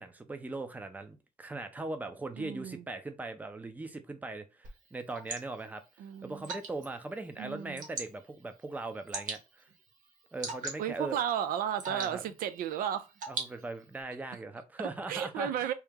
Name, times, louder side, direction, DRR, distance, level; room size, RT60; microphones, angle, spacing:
voice 1, 0.0-5.8 6.2-9.7 10.3-11.2 11.9-12.2 13.3-15.7, right 2 dB, 10° right, 0.5 m, -40 dB
voice 2, 2.4-2.8 6.0-6.5 7.4-7.8 10.8-13.1 15.1-15.7, right 9 dB, 80° right, 0.4 m, -33 dB
Water / Drip, 4.6-14.0, right 4 dB, 65° right, 1.1 m, -44 dB
2.9 x 2.9 x 3.5 m
cardioid pair, 135°, 14 cm